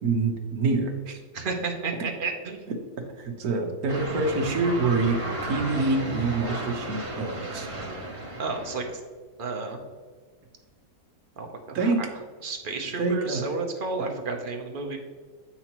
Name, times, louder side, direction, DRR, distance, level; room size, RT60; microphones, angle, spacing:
voice 1, 0.0-1.2 3.2-5.2 5.4-7.7 11.7-12.0 13.0-13.4 14.1-14.2, right 3 dB, 65° right, 3 dB, 1.4 m, -26 dB
voice 2, 1.3-2.6 8.4-8.9 9.4-9.8 11.4-12.1 12.4-15.0, right 4 dB, 45° right, 3 dB, 0.7 m, -31 dB
sound 1, 3.9-9.0, right 2 dB, 25° right, 0.9 m, -34 dB
8.1 x 5.7 x 2.9 m, 1.5 s
omnidirectional pair, 1.8 m